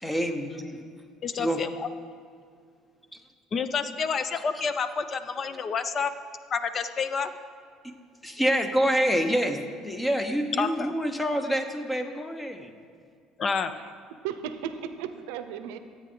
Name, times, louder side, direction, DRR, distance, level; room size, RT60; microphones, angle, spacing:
voice 1, 0.0-0.9 1.4-1.7 7.8-12.7, equal, 10° left, 7 dB, 0.9 m, -27 dB
voice 2, 1.2-1.7 3.5-6.1 6.5-7.3 10.6-10.9 13.4-13.7, left 5 dB, 40° left, 12 dB, 0.5 m, -29 dB
voice 3, 13.7-15.8, right 8 dB, 90° right, 10 dB, 0.6 m, -36 dB
13.5 x 8.6 x 3.8 m, 2.2 s
supercardioid pair, 105°, 0 cm